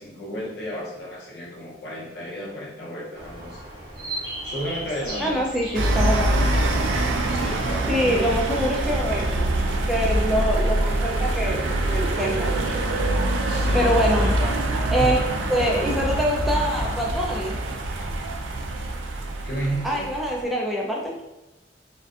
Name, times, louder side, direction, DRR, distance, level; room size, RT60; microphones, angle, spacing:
voice 1, 0.0-4.0 4.4-5.4 7.3-8.4 13.4-14.5 19.4-20.0, equal, 60° left, -3 dB, 0.6 m, -33 dB
sound 1, 3.1-8.3, right 1 dB, 20° right, 0.7 m, -37 dB
voice 2, 5.2-6.3 7.9-9.5 9.9-12.5 13.7-14.3 14.9-17.6 19.8-21.2, equal, ahead, -3 dB, 0.3 m, -25 dB
sound 2, 5.7-20.4, right 1 dB, 85° right, 0.3 m, -24 dB
2.5 x 2.2 x 2.4 m, 0.98 s
head